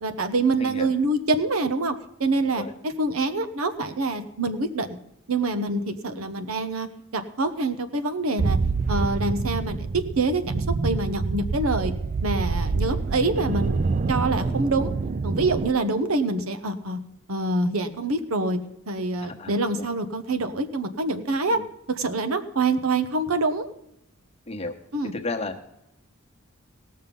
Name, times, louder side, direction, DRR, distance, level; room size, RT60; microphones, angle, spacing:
voice 1, 0.0-1.9 2.2-2.6 3.0-5.0 5.3-6.9 7.1-8.6 8.9-11.9 12.2-13.8 14.1-14.9 15.2-17.0 17.3-18.6 18.9-21.6 22.0-23.7 24.9-25.1, right 2 dB, 80° right, 8 dB, 1.0 m, -25 dB
voice 2, 0.6-0.9 2.4-2.7 5.9-6.2 14.3-14.6 19.2-19.9 21.5-21.6 24.5-24.7 25.1-25.5, left 2 dB, 30° left, 4 dB, 1.1 m, -34 dB
sound 1, 8.4-15.7, right 4 dB, 35° right, 0.3 m, -26 dB
18.0 x 6.6 x 5.4 m, 0.79 s
head